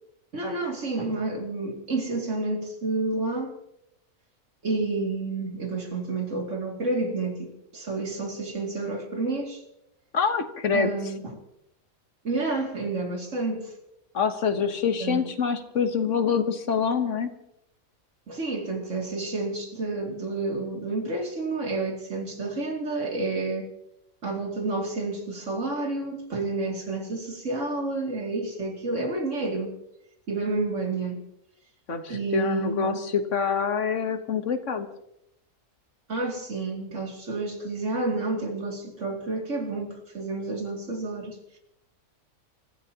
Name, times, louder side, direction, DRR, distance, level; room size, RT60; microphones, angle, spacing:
voice 1, 0.3-3.5 4.6-9.6 10.7-11.3 12.2-13.7 15.0-15.2 18.3-23.7 24.2-29.7 30.3-31.2 32.1-33.0 36.1-41.6, right 3 dB, 60° right, 1 dB, 3.0 m, -30 dB
voice 2, 10.1-10.9 14.1-17.3 31.9-34.9, left 6 dB, 60° left, 8 dB, 1.5 m, -26 dB
29.5 x 14.5 x 2.9 m, 0.82 s
omnidirectional pair, 1.5 m